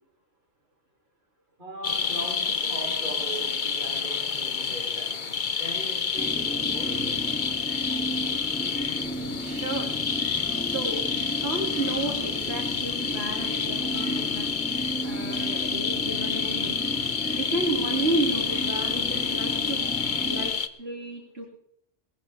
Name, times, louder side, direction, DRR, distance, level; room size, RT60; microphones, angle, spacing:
voice 1, 1.6-5.3 5.6-7.1 9.0-9.3, right 2 dB, 50° right, 4.3 m, -40 dB
sound 1, 1.8-20.7, left 6 dB, 50° left, 1.1 m, -29 dB
sound 2, 6.2-20.5, equal, 10° left, 2.9 m, -34 dB
voice 2, 9.4-9.9 10.6-14.5 15.0-16.8 17.3-19.8 20.2-20.5 20.8-21.5, right 2 dB, 70° right, 3.6 m, -32 dB
20.0 x 14.5 x 3.6 m
omnidirectional pair, 1.1 m